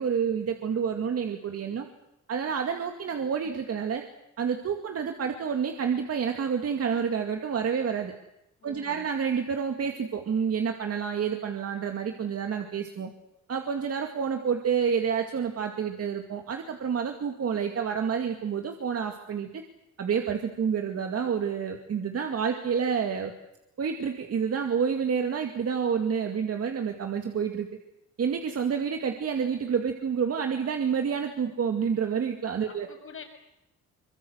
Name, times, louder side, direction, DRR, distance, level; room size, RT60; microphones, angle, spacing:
voice 1, 0.0-1.9 2.3-4.0 4.4-8.1 8.6-13.1 13.5-19.6 20.0-23.3 23.8-27.7 28.2-32.9, right 7 dB, 50° right, 4 dB, 2.3 m, -29 dB
voice 2, 8.6-9.1 32.6-33.2, left 6 dB, 45° left, 4 dB, 6.6 m, -46 dB
25.0 x 21.5 x 8.0 m, 0.86 s
cardioid pair, 90°, 30 cm